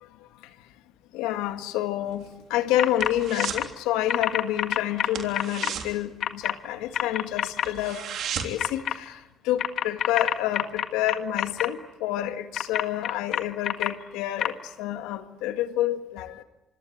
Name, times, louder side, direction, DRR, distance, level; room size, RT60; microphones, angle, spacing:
voice 1, 1.1-8.0 8.4-9.2 9.4-16.4, left 12 dB, 85° left, 9 dB, 1.8 m, -28 dB
sound 1, 2.1-3.7 4.0-4.3 4.6-4.7 5.1-6.9 7.3-7.4 7.6-8.7 9.1-9.2, right 8 dB, 70° right, 3.4 m, -35 dB
sound 2, 2.8-3.1 3.4-3.6 4.1-5.7 6.2-6.5 6.9-7.7 8.6-8.9 9.6-11.7 12.5-13.9 14.4-14.5, left 10 dB, 70° left, 1.6 m, -26 dB
26.0 x 25.0 x 8.6 m, 1.0 s
supercardioid pair, 60°, 0 cm